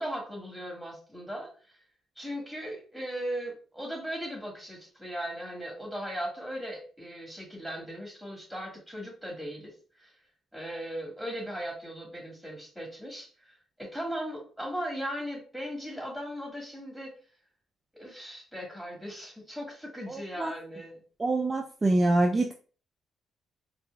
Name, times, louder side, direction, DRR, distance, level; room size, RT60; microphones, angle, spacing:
voice 1, 0.0-1.7 2.2-9.7 10.0-10.1 10.5-17.1 17.9-21.0, equal, ahead, -1 dB, 1.6 m, -38 dB
voice 2, 20.1-20.5 21.2-22.5, right 2 dB, 25° right, 2 dB, 0.4 m, -25 dB
4.2 x 2.5 x 2.3 m, 0.39 s
cardioid pair, 90°, 0 cm